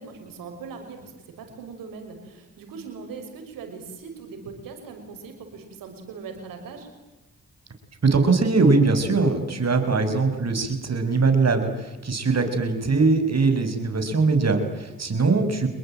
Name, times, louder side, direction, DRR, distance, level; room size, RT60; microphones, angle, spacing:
voice 1, 0.0-6.9, right 5 dB, 90° right, 5 dB, 5.9 m, -40 dB
voice 2, 8.0-15.7, right 3 dB, 50° right, 7 dB, 6.2 m, -21 dB
27.0 x 21.5 x 9.1 m, 1.1 s
supercardioid pair, 45°, 33 cm